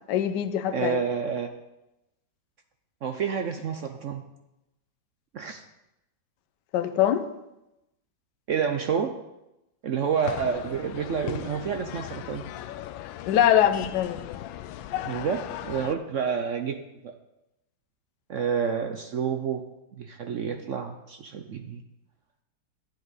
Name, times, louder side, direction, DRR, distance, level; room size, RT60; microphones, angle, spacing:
voice 1, 0.1-1.0 6.7-7.2 13.2-14.4, left 10 dB, 70° left, 8 dB, 1.3 m, -23 dB
voice 2, 0.7-1.5 3.0-4.2 5.3-5.6 8.5-9.1 9.8-12.4 15.0-16.8 18.3-19.6 19.9-21.8, right 6 dB, 65° right, 7 dB, 0.7 m, -29 dB
sound 1, 10.2-16.0, left 12 dB, 90° left, 1.3 m, -37 dB
12.5 x 9.8 x 4.1 m, 0.92 s
omnidirectional pair, 2.0 m